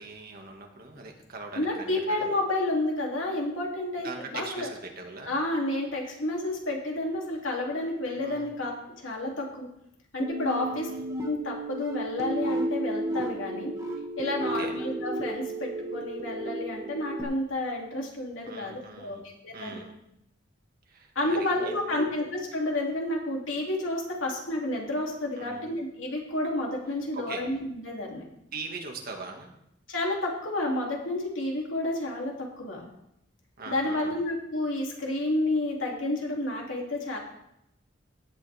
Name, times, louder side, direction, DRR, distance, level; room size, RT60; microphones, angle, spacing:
voice 1, 0.0-2.3 4.0-5.3 8.2-8.5 10.6-11.0 14.4-14.7 18.4-19.2 19.5-19.9 20.9-22.1 25.4-25.7 27.1-27.4 28.5-29.5 33.6-34.2, right 3 dB, 50° right, 2 dB, 1.9 m, -41 dB
voice 2, 1.5-4.1 4.3-4.7 5.3-8.7 9.0-9.7 10.1-10.9 11.2-13.7 14.2-19.2 19.4-19.8 21.1-28.2 29.9-32.8 33.7-37.2, left 1 dB, 80° left, -1 dB, 2.9 m, -30 dB
sound 1, 10.2-17.2, right 1 dB, 15° right, 1.8 m, -33 dB
16.0 x 8.9 x 3.5 m, 0.80 s
head